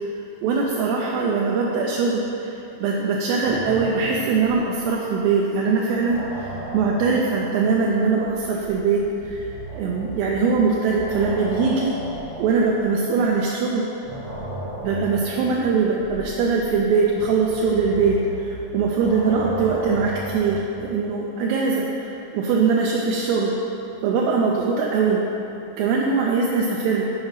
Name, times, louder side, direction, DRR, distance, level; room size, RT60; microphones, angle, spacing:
voice 1, 0.4-11.9 12.4-13.9 14.8-23.5 24.0-25.2 25.8-27.0, right 4 dB, 80° right, -3 dB, 2.4 m, -22 dB
sound 1, 3.4-5.3 5.5-13.5 14.0-20.9, right 1 dB, 55° right, 1.0 m, -36 dB
7.8 x 4.9 x 5.6 m, 2.9 s
omnidirectional pair, 5.0 m